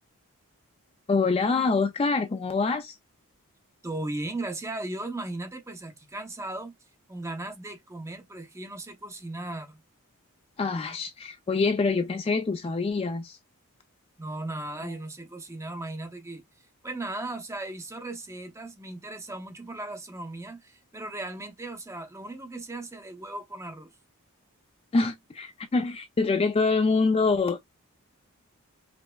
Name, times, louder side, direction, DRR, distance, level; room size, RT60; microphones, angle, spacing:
voice 1, 1.1-3.0 10.6-13.4 14.8-14.9 24.9-27.6, left 4 dB, 25° left, 0.3 m, -25 dB
voice 2, 3.8-6.7 7.1-9.8 14.2-23.9, right 2 dB, 15° right, 0.6 m, -37 dB
5.2 x 2.0 x 2.2 m
head